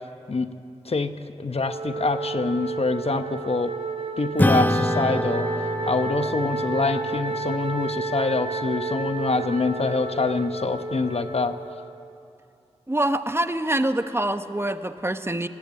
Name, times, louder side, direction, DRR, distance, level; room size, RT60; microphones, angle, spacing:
voice 1, 0.9-3.7 4.2-5.5 5.9-11.6, left 3 dB, 60° left, 9 dB, 1.0 m, -25 dB
Wind instrument woodwind instrument, 1.6-12.0, right 3 dB, 60° right, 2.1 m, -31 dB
Acoustic guitar / Strum, 4.4-9.2, left 1 dB, 15° left, 0.9 m, -27 dB
voice 2, 12.9-15.5, right 1 dB, 20° right, 9 dB, 1.0 m, -25 dB
19.5 x 15.0 x 9.3 m, 2.7 s
cardioid pair, 45°, 12 cm